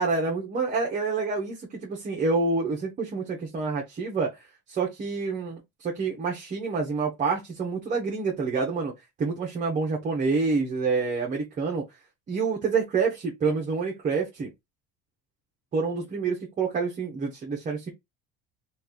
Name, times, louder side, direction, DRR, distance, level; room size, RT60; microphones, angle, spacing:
voice 1, 0.0-8.9 9.2-11.8 12.3-14.5 15.7-17.9, right 4 dB, 25° right, 0.8 m, -27 dB
3.0 x 2.4 x 3.6 m
cardioid pair, 155°, 31 cm